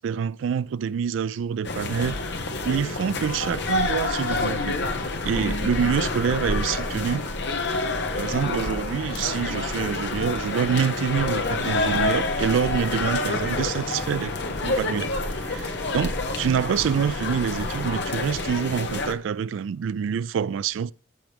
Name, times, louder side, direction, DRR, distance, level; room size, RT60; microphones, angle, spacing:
voice 1, 0.0-4.8 5.2-7.2 8.2-14.3 14.6-15.1 15.4-20.9, right 7 dB, 85° right, 0.3 m, -26 dB
sound 1, 1.6-19.1, left 2 dB, 65° left, 1.2 m, -28 dB
sound 2, 3.6-19.1, equal, 5° left, 1.4 m, -45 dB
15.0 x 5.8 x 3.5 m
head